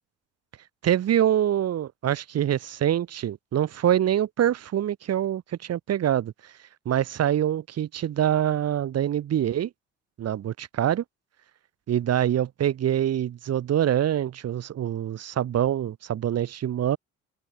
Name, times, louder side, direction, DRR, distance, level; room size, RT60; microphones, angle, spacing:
voice 1, 0.8-6.3 6.8-9.7 10.2-11.0 11.9-17.0, right 11 dB, 55° right, 1.5 m, -25 dB
supercardioid pair, 65°, 30 cm